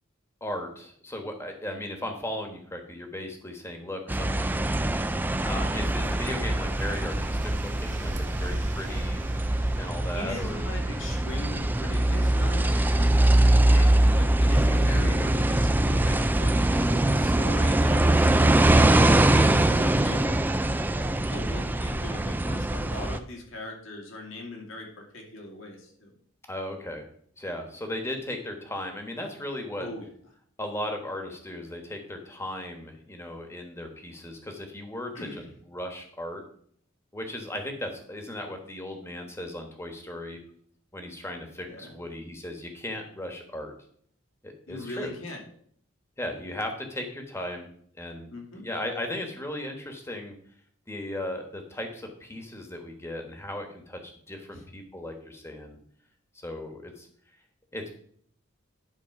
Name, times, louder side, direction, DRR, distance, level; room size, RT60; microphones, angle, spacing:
voice 1, 0.4-4.6 5.4-8.1 8.4-9.2 9.8-10.6 14.5-15.4 26.5-27.1 27.4-29.9 30.6-36.4 37.1-40.4 40.9-43.7 44.4-45.2 46.2-47.7 48.0-50.3 50.9-55.8 56.3-57.1 57.7-57.9, left 1 dB, 15° left, 4 dB, 1.3 m, -36 dB
sound 1, 4.1-23.2, right 1 dB, 10° right, 0.3 m, -23 dB
sound 2, 5.0-13.3, right 1 dB, 40° right, 1.3 m, -42 dB
voice 2, 10.1-20.4 21.3-26.1 29.8-30.1 35.1-35.5 41.7-41.9 44.7-45.4 48.3-48.6 54.5-54.6, left 2 dB, 80° left, 0 dB, 2.5 m, -40 dB
10.5 x 4.3 x 5.8 m, 0.62 s
head